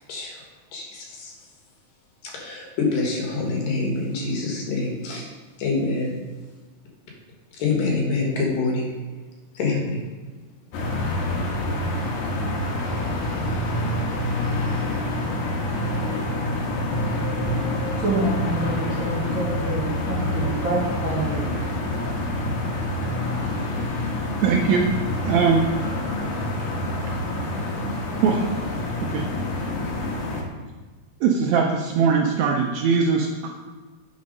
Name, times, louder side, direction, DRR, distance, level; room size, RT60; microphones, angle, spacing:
voice 1, 0.1-0.4 0.7-1.3 2.2-5.3 5.6-6.2 7.5-8.9 9.5-10.0, left 3 dB, 85° left, -1 dB, 3.3 m, -26 dB
sound 1, 10.7-30.4, left 1 dB, 70° left, 2.5 m, -27 dB
voice 2, 18.0-21.6, right 2 dB, 50° right, -6 dB, 1.5 m, -27 dB
voice 3, 24.4-24.9 25.2-25.6 28.2-28.5 29.1-29.2 31.2-33.5, right 5 dB, 75° right, 1 dB, 1.7 m, -20 dB
9.0 x 4.4 x 5.2 m, 1.3 s
omnidirectional pair, 3.8 m